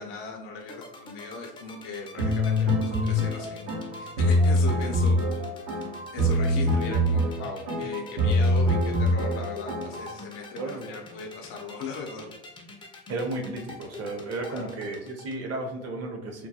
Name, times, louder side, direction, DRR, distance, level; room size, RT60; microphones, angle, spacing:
voice 1, 0.0-5.8 6.1-12.3 14.5-14.7, left 4 dB, 80° left, 1 dB, 0.5 m, -38 dB
sound 1, 0.6-15.4, left 3 dB, 15° left, 0.3 m, -45 dB
sound 2, 2.2-10.1, left 1 dB, 80° right, 0.8 m, -24 dB
voice 2, 10.6-11.0 13.1-16.5, right 2 dB, 45° right, 2 dB, 0.7 m, -33 dB
2.2 x 2.1 x 2.7 m, 0.92 s
supercardioid pair, 85°, 36 cm